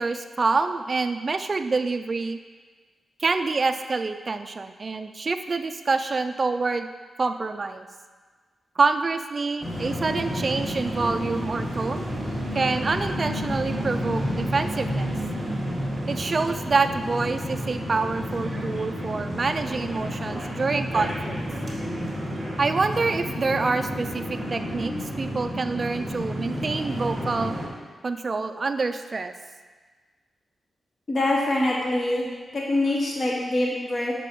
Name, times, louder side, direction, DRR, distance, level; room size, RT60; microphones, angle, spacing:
voice 1, 0.0-2.4 3.2-6.9 7.2-7.9 8.8-12.1 12.5-15.1 16.1-21.4 22.6-27.5 28.0-29.3, right 4 dB, 30° right, 8 dB, 0.3 m, -26 dB
sound 1, 9.6-27.7, equal, 15° right, 1.6 m, -30 dB
voice 2, 31.1-32.3 32.5-34.1, left 1 dB, 35° left, -2 dB, 0.9 m, -24 dB
6.1 x 6.0 x 4.9 m, 1.5 s
wide cardioid pair, 175°, 0 cm